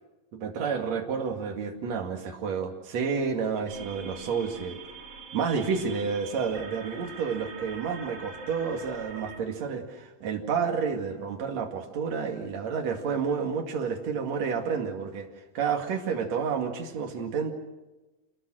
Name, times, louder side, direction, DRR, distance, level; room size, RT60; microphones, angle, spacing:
voice 1, 0.3-4.8 5.3-17.5, right 6 dB, 45° right, 3 dB, 3.1 m, -30 dB
sound 1, 3.7-9.4, right 4 dB, 65° right, 5.5 m, -44 dB
28.0 x 21.0 x 6.3 m, 1.1 s
omnidirectional pair, 4.6 m